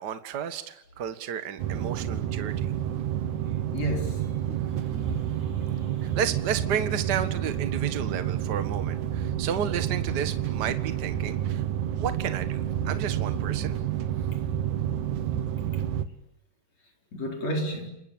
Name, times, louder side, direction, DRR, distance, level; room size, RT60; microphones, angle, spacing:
voice 1, 0.0-2.7 6.0-11.6 12.0-13.7, right 8 dB, 80° right, 0.9 m, -32 dB
sound 1, 1.6-16.1, right 10 dB, 60° right, 2.2 m, -29 dB
voice 2, 3.7-4.3 4.9-6.2 17.1-17.9, equal, 40° left, 5.4 m, -33 dB
29.5 x 20.0 x 9.0 m
omnidirectional pair, 4.7 m